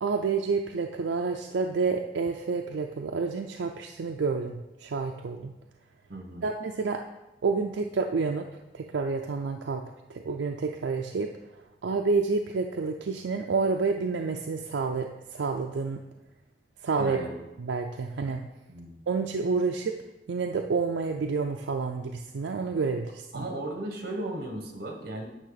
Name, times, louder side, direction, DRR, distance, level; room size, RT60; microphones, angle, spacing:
voice 1, 0.0-5.5 6.4-7.0 7.4-8.5 8.7-11.3 11.8-16.0 16.8-17.2 17.6-18.4 19.1-20.0 20.3-23.4, right 4 dB, 80° right, 3 dB, 0.5 m, -29 dB
voice 2, 6.1-6.5 17.0-17.4 18.7-19.0 23.3-25.3, right 1 dB, 55° right, 3 dB, 1.4 m, -36 dB
9.1 x 6.1 x 4.0 m, 1.0 s
head